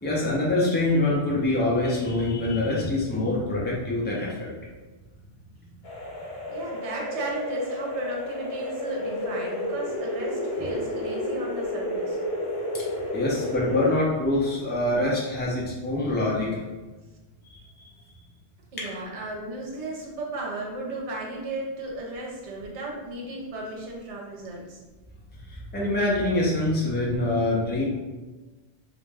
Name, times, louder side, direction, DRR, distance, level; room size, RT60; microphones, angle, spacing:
voice 1, 0.0-4.5 12.7-12.8 13.1-16.6 17.5-17.9 25.5-27.8, left 2 dB, 15° left, -4 dB, 0.3 m, -25 dB
sound 1, 5.8-14.0, left 1 dB, 65° left, 0.9 m, -31 dB
voice 2, 6.5-12.2 18.7-24.8, right 2 dB, 75° right, -2 dB, 1.0 m, -34 dB
2.5 x 2.1 x 3.3 m, 1.2 s
omnidirectional pair, 1.2 m